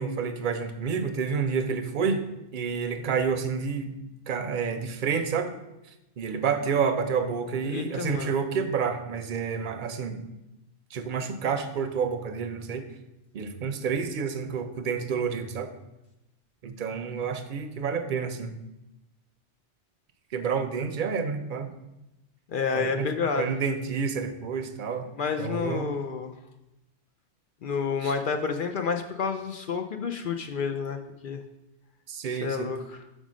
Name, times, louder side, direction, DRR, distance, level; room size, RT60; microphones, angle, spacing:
voice 1, 0.0-2.2 2.5-4.0 4.3-5.5 6.2-10.2 10.9-12.8 13.3-15.7 16.6-18.6 20.3-21.7 22.7-25.1 25.4-25.9 28.0-28.1 32.1-32.7, right 6 dB, 50° right, 7 dB, 0.7 m, -29 dB
voice 2, 7.6-8.3 22.5-23.5 25.1-26.3 27.6-31.0 31.2-31.4 32.2-33.0, left 5 dB, 60° left, 6 dB, 0.6 m, -29 dB
5.3 x 5.0 x 6.2 m, 0.94 s
omnidirectional pair, 1.2 m